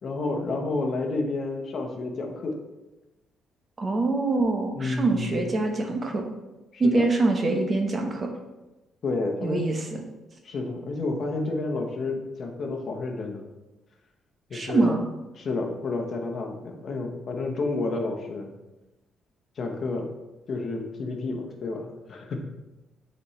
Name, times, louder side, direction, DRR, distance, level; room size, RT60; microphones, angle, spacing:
voice 1, 0.0-2.6 4.7-5.4 6.7-7.0 9.0-9.7 10.4-13.4 14.5-15.0 15.3-18.5 19.6-20.1 20.5-22.4, left 3 dB, 45° left, 3 dB, 1.0 m, -30 dB
voice 2, 3.8-6.3 6.8-8.3 9.4-9.8 14.5-15.0, right 2 dB, 30° right, 3 dB, 1.0 m, -24 dB
8.3 x 4.3 x 3.2 m, 1.1 s
cardioid pair, 125°, 0 cm